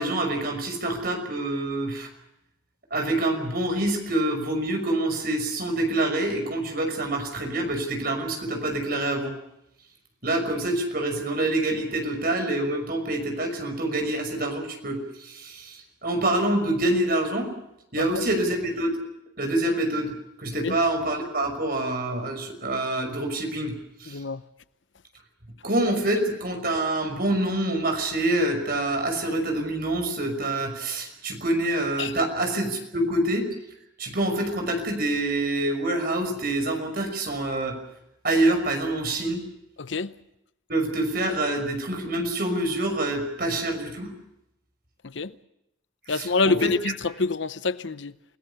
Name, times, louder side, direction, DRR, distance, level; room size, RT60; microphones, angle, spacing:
voice 1, 0.0-2.1 2.9-9.3 10.2-17.5 17.9-19.0 19.4-20.1 20.4-23.7 24.0-24.2 25.6-33.5 34.0-37.8 38.2-39.4 40.7-44.1 46.1-46.7, right 1 dB, 50° right, 5.9 m, -26 dB
voice 2, 24.1-24.4 32.0-32.1 39.8-40.1 45.0-45.3 46.1-48.1, left 3 dB, 65° left, 0.8 m, -26 dB
29.0 x 18.5 x 6.9 m
head